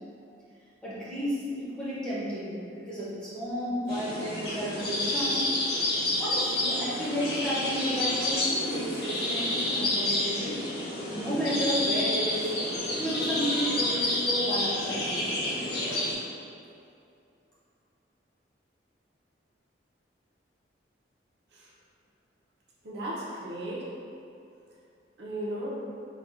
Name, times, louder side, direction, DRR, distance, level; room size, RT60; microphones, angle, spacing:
voice 1, 0.8-5.4 6.2-10.6 11.1-12.5 12.9-15.3, equal, 5° left, -10 dB, 0.7 m, -32 dB
sound 1, 3.9-16.1, left 1 dB, 55° left, 0.6 m, -29 dB
voice 2, 22.8-23.8 25.2-25.8, right 1 dB, 60° right, -6 dB, 0.6 m, -35 dB
4.0 x 2.2 x 2.4 m, 2.5 s
head